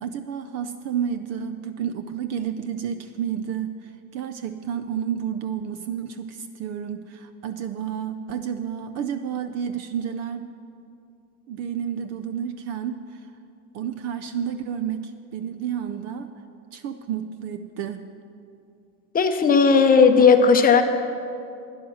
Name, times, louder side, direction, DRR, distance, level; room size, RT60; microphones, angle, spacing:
voice 1, 0.0-10.5 11.5-13.3 13.7-16.3 16.7-18.1, right 8 dB, 35° right, 10 dB, 0.5 m, -30 dB
voice 2, 19.1-20.8, left 5 dB, 20° left, 6 dB, 0.7 m, -15 dB
11.5 x 9.7 x 6.3 m, 2.5 s
supercardioid pair, 125°, 46 cm